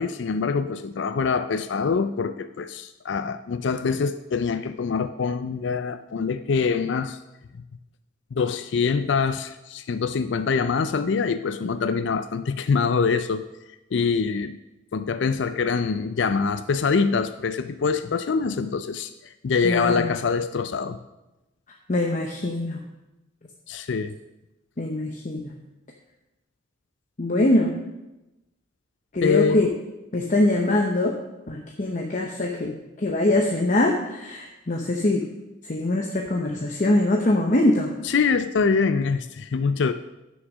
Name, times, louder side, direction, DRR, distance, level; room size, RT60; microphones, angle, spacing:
voice 1, 0.0-7.2 8.3-13.4 13.9-14.6 14.9-19.1 19.4-21.0 23.7-24.1 29.2-29.7 38.0-39.9, left 5 dB, 60° left, 12 dB, 0.4 m, -24 dB
voice 2, 19.6-20.1 21.9-22.8 24.8-25.5 27.2-27.8 29.1-29.7 30.1-31.2 31.5-35.2 35.7-37.9, left 1 dB, 40° left, 2 dB, 0.8 m, -23 dB
9.6 x 6.3 x 6.1 m, 0.98 s
head